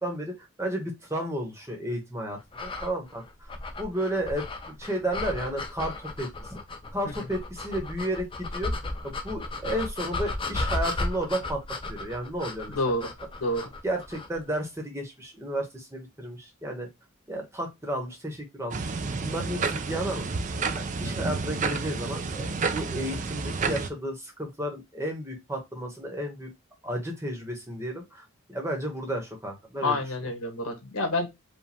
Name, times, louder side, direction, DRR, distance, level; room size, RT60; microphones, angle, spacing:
voice 1, 0.0-3.5 3.8-6.6 6.9-8.7 9.0-11.6 11.9-12.8 13.8-16.9 17.3-18.9 19.2-20.4 20.8-26.5 26.8-30.3, right 1 dB, 15° right, 1.2 m, -33 dB
sound 1, 2.5-14.4, left 2 dB, 25° left, 0.5 m, -34 dB
voice 2, 12.7-13.0 13.4-13.7 29.8-31.3, left 2 dB, 85° left, 1.5 m, -28 dB
sound 2, 18.7-23.9, right 4 dB, 35° right, 0.4 m, -30 dB
5.0 x 2.5 x 3.5 m
head